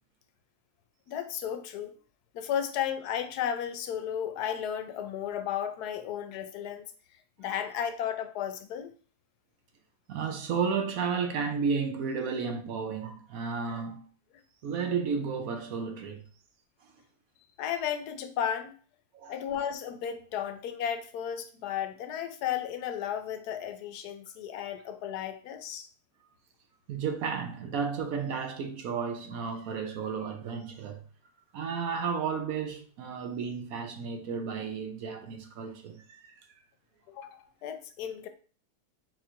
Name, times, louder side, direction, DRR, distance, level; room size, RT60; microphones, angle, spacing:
voice 1, 1.1-1.9 2.3-6.9 7.4-8.9 17.6-18.7 19.3-25.9 37.1-38.3, left 9 dB, 85° left, 1.2 m, -34 dB
voice 2, 10.1-14.0 14.6-16.2 19.1-19.4 26.9-31.0 31.5-36.4, right 5 dB, 70° right, 1.1 m, -33 dB
4.2 x 2.5 x 4.4 m
omnidirectional pair, 1.6 m